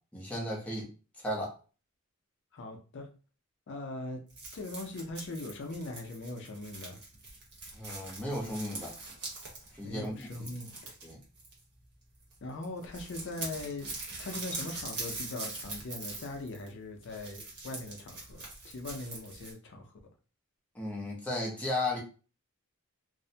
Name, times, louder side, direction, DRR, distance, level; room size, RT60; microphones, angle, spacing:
voice 1, 0.1-0.9 1.2-1.5 7.7-8.9 9.7-10.5 11.0-11.2 20.7-22.0, left 1 dB, 5° left, 0.7 m, -35 dB
voice 2, 2.5-3.1 3.7-4.2 4.5-7.0 9.8-10.9 12.4-13.9 14.2-19.9, left 2 dB, 55° left, 0.5 m, -40 dB
sound 1, 4.3-11.9 12.2-12.4 12.6-19.5, right 3 dB, 55° right, 1.0 m, -43 dB
2.5 x 2.1 x 2.7 m
head